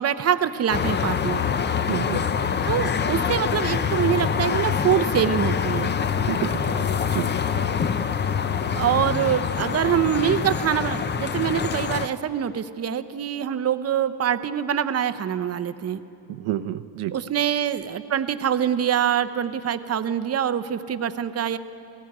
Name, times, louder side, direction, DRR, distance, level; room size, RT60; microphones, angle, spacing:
voice 1, 0.0-1.4 2.6-5.9 8.7-16.0 17.1-21.6, right 9 dB, 30° right, 12 dB, 0.6 m, -24 dB
sound 1, 0.7-12.1, left 7 dB, 25° left, 0.5 m, -25 dB
voice 2, 1.9-2.3 6.3-7.3 16.3-17.2, right 13 dB, 80° right, 12 dB, 0.9 m, -30 dB
29.5 x 18.5 x 4.8 m, 2.7 s
cardioid pair, 145°, 48 cm